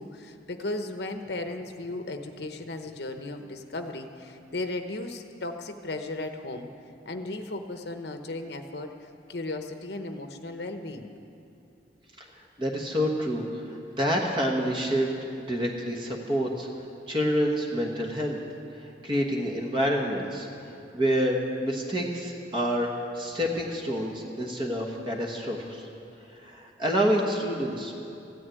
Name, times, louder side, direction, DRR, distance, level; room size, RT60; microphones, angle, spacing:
voice 1, 0.0-6.7 7.1-8.9 9.3-11.1, left 2 dB, 65° left, 6 dB, 0.9 m, -35 dB
voice 2, 12.3-15.1 15.4-16.7 17.1-18.4 18.7-20.5 20.9-25.9 26.3-27.9, equal, 25° right, 0 dB, 1.3 m, -28 dB
15.0 x 9.8 x 9.1 m, 2.8 s
head